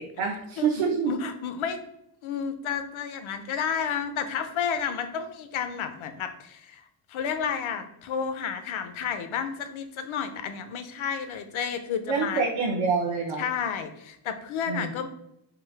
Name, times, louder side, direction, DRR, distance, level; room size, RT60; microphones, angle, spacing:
voice 1, 0.0-1.1 12.1-13.4 14.7-14.9, right 5 dB, 75° right, -1 dB, 0.7 m, -26 dB
voice 2, 1.1-1.8 2.2-12.4 13.4-15.1, left 7 dB, 80° left, 8 dB, 0.7 m, -31 dB
3.8 x 2.7 x 4.5 m, 0.79 s
wide cardioid pair, 155°, 47 cm